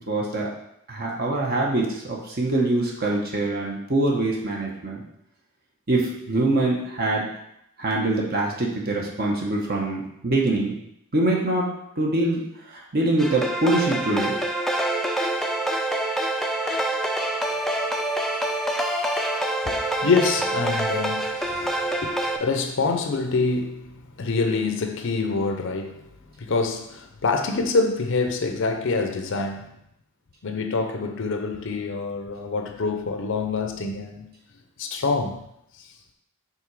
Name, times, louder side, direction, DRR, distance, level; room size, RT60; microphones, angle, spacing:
voice 1, 0.1-0.5 0.9-5.0 5.9-7.3 7.8-10.8 11.1-14.4, right 2 dB, 45° right, -2 dB, 1.0 m, -24 dB
sound 1, 13.2-22.4, right 1 dB, ahead, 0.4 m, -26 dB
voice 2, 20.0-23.9 24.2-26.0 26.4-29.7 30.4-34.3 34.8-35.4, left 4 dB, 60° left, 6 dB, 0.6 m, -26 dB
5.8 x 3.8 x 4.7 m, 0.76 s
head